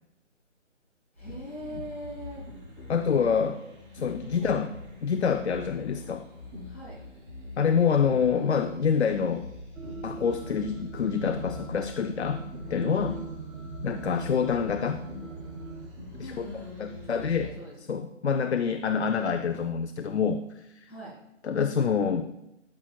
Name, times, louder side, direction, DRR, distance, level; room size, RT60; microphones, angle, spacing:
voice 1, 1.1-2.4 3.1-3.2 4.2-4.5 6.6-7.0 13.0-13.2 16.2-18.0 20.9-21.2, equal, 10° left, -8 dB, 0.9 m, -42 dB
sound 1, 1.2-17.5, left 2 dB, 25° right, 2.7 m, -44 dB
voice 2, 2.9-3.6 3.9-4.7 5.0-6.2 7.6-9.5 10.0-12.4 12.7-13.1 13.8-15.0 16.2-16.5 16.8-17.5 17.9-20.9 21.4-22.3, left 6 dB, 65° left, 7 dB, 0.5 m, -26 dB
sound 2, 9.7-15.9, right 4 dB, 75° right, 1.0 m, -41 dB
12.5 x 6.0 x 2.3 m, 0.88 s
hypercardioid pair, 180°, 37 cm